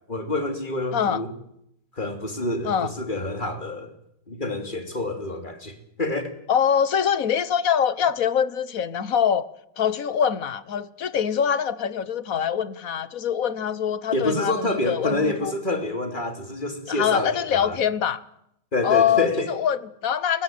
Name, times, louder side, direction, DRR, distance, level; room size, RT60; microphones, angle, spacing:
voice 1, 0.1-1.3 2.0-3.9 4.3-6.2 14.1-17.8 18.7-19.5, left 2 dB, 25° left, 3.1 m, -27 dB
voice 2, 6.5-9.5 9.8-15.5 16.9-18.2 18.8-20.4, left 8 dB, 55° left, 1.4 m, -24 dB
29.5 x 16.0 x 9.3 m
omnidirectional pair, 2.0 m